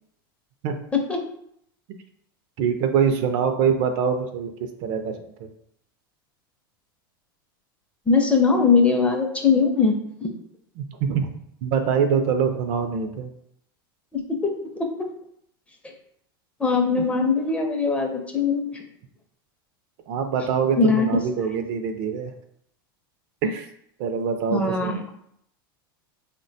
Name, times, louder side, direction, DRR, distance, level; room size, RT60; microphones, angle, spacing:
voice 1, 2.6-5.5 10.8-13.3 17.0-17.1 20.1-22.3 23.4-23.7 24.0-25.0, right 6 dB, 55° right, 7 dB, 0.4 m, -24 dB
voice 2, 8.1-9.9 10.2-10.3 14.1-14.9 16.6-18.8 20.8-21.1 21.5-21.6 24.5-25.1, left 4 dB, 10° left, 2 dB, 0.5 m, -21 dB
3.4 x 2.1 x 2.6 m, 0.72 s
hypercardioid pair, 110°, 12 cm